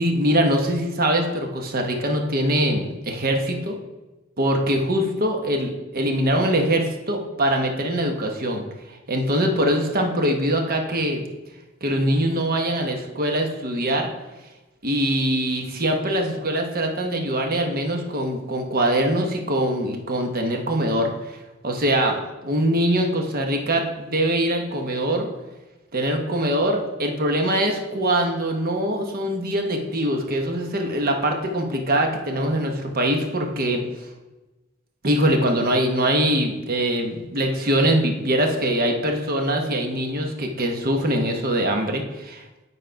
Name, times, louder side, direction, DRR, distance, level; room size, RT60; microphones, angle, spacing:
voice 1, 0.0-3.8 4.4-8.6 9.1-11.2 11.8-14.1 14.8-21.1 21.6-22.2 22.4-25.3 25.9-33.8 35.0-42.4, right 1 dB, 50° right, 3 dB, 1.1 m, -23 dB
9.1 x 4.2 x 5.1 m, 1.1 s
head